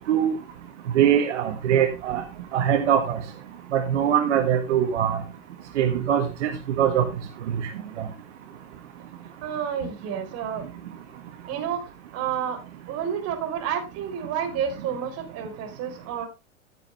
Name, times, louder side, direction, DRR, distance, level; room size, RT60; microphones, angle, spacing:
voice 1, 0.9-2.2 2.5-3.2 3.7-5.2 5.8-7.0 7.5-7.6 8.0-8.1, right 9 dB, 65° right, 5 dB, 1.7 m, -22 dB
voice 2, 9.4-10.7 11.5-11.8 12.1-12.6 12.9-16.3, right 8 dB, 40° right, 5 dB, 3.9 m, -30 dB
15.0 x 6.9 x 3.2 m, 0.27 s
figure-of-eight pair, 95°, 39 cm